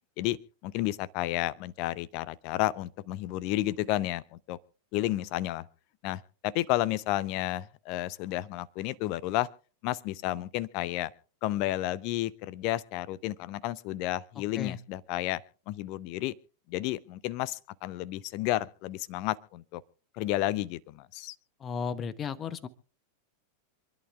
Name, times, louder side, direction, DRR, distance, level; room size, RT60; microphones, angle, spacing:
voice 1, 0.6-4.6 4.9-5.7 6.0-9.5 9.8-11.1 11.4-15.4 15.7-16.3 16.7-19.8 20.2-21.3, left 15 dB, 45° left, 21 dB, 0.6 m, -31 dB
voice 2, 21.6-22.7, left 6 dB, 25° left, 15 dB, 1.0 m, -34 dB
27.5 x 11.0 x 2.4 m, 0.37 s
figure-of-eight pair, 90°, 0 cm